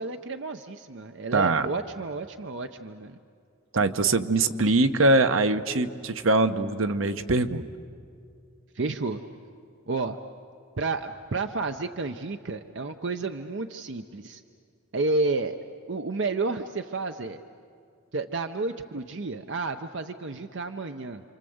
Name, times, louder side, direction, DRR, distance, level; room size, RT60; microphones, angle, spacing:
voice 1, 0.0-3.2 8.7-9.2 9.9-10.2 10.8-14.4 14.9-15.6 15.9-17.4 18.1-21.2, right 3 dB, 60° right, 7 dB, 0.7 m, -31 dB
voice 2, 1.3-1.7 3.7-7.7, right 2 dB, 75° right, 10 dB, 1.0 m, -23 dB
28.5 x 26.0 x 7.9 m, 2.3 s
head